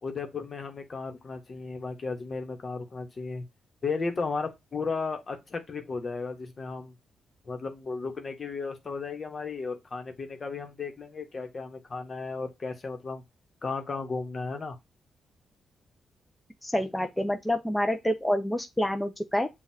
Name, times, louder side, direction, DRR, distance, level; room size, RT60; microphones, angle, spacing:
voice 1, 0.0-3.4 3.8-6.9 7.4-13.2 13.6-14.8, left 4 dB, 45° left, 1.1 m, -34 dB
voice 2, 16.6-19.5, left 1 dB, 10° left, 0.6 m, -27 dB
7.0 x 2.4 x 2.7 m
supercardioid pair, 50°, 0 cm